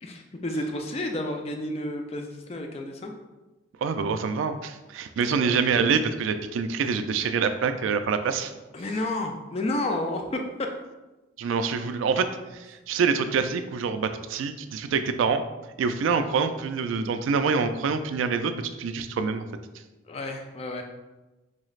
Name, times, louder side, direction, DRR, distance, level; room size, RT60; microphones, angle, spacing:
voice 1, 0.0-3.1 5.2-5.4 8.7-10.4 20.1-20.8, left 1 dB, 30° left, 4 dB, 0.4 m, -31 dB
voice 2, 3.8-8.5 11.4-15.4 15.8-19.5, right 5 dB, 75° right, 9 dB, 0.3 m, -26 dB
4.6 x 3.1 x 2.4 m, 1.1 s
head